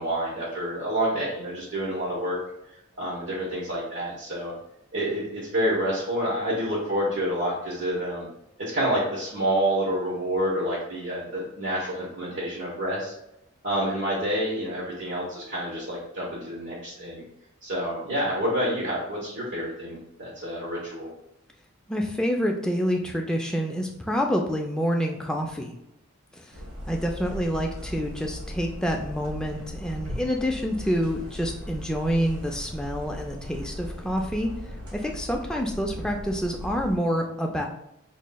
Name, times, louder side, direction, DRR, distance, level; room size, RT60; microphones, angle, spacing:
voice 1, 0.0-2.4 3.0-4.5 4.9-8.3 8.6-13.1 13.6-17.2 17.6-21.1, equal, 55° right, -7 dB, 1.0 m, -28 dB
voice 2, 21.9-25.7 26.3-26.6 26.9-34.5 34.9-37.7, equal, 5° left, 1 dB, 0.4 m, -27 dB
sound 1, 26.5-37.0, equal, 80° right, 1.1 m, -38 dB
5.3 x 3.1 x 2.2 m, 0.84 s
head